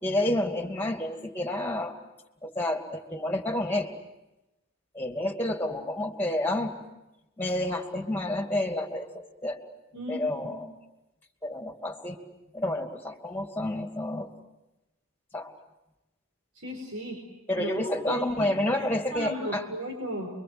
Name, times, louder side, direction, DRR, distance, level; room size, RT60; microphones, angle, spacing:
voice 1, 0.0-1.9 2.4-3.9 4.9-6.7 7.4-9.6 10.1-10.7 11.4-12.2 12.5-14.3 15.3-15.5 17.5-19.7, left 1 dB, 10° left, 4 dB, 2.6 m, -29 dB
voice 2, 9.9-10.7 16.5-17.2 17.6-17.7 18.1-18.5 18.7-20.3, equal, 85° right, 2 dB, 4.8 m, -36 dB
30.0 x 23.5 x 7.8 m, 0.99 s
head